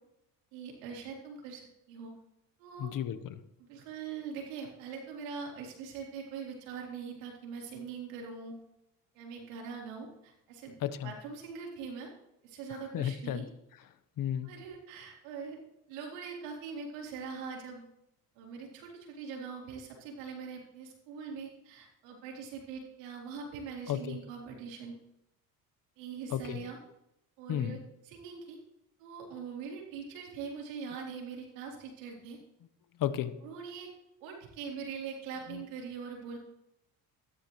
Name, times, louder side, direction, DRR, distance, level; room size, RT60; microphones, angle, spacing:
voice 1, 0.5-2.1 2.6-2.9 3.6-8.6 9.1-10.8 11.0-12.1 12.4-13.5 14.4-15.6 15.9-17.8 18.4-25.0 26.0-26.8 27.4-27.8 28.1-28.6 29.0-32.4 33.4-33.9 34.2-36.4, right 6 dB, 90° right, -1 dB, 3.8 m, -42 dB
voice 2, 2.8-3.3 10.8-11.1 12.9-13.4 14.2-14.5 23.9-24.2 26.3-26.6 27.5-27.8 33.0-33.3 35.5-35.6, left 10 dB, 55° left, 12 dB, 1.1 m, -33 dB
15.0 x 12.5 x 3.2 m, 0.84 s
supercardioid pair, 80°, 39 cm